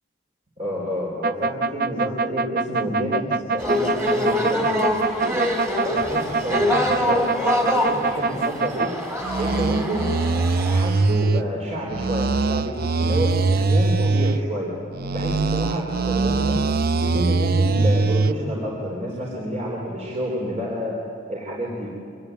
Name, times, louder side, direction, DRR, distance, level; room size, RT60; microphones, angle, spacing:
voice 1, 0.6-3.2 3.5-5.4 5.8-8.9 9.3-10.2 10.5-14.7 15.1-16.6 17.0-21.0 21.3-21.9, equal, 40° right, -3 dB, 3.8 m, -29 dB
sound 1, 1.2-8.9 9.2-11.4 11.9-14.4 14.9-18.3, right 3 dB, 55° right, 0.6 m, -22 dB
sound 2, 3.6-10.8, left 1 dB, 15° right, 3.4 m, -25 dB
24.5 x 21.0 x 9.2 m, 2.4 s
head